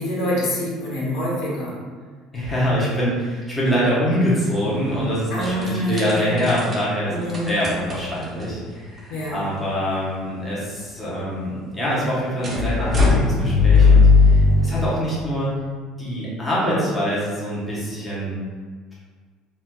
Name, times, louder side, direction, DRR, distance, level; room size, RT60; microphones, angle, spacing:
voice 1, 0.0-1.8 5.3-6.4 7.1-7.5 9.1-9.5, equal, 80° left, -5 dB, 1.1 m, -26 dB
voice 2, 2.3-7.1 7.4-15.5 16.0-18.4, equal, 10° left, -9 dB, 0.8 m, -24 dB
sound 1, 4.7-5.0 5.4-6.7 7.3-8.5 9.3-9.4 9.5-9.6 12.4-14.9, left 4 dB, 25° right, 0.6 m, -17 dB
4.3 x 2.2 x 2.2 m, 1.5 s
cardioid pair, 155°, 0 cm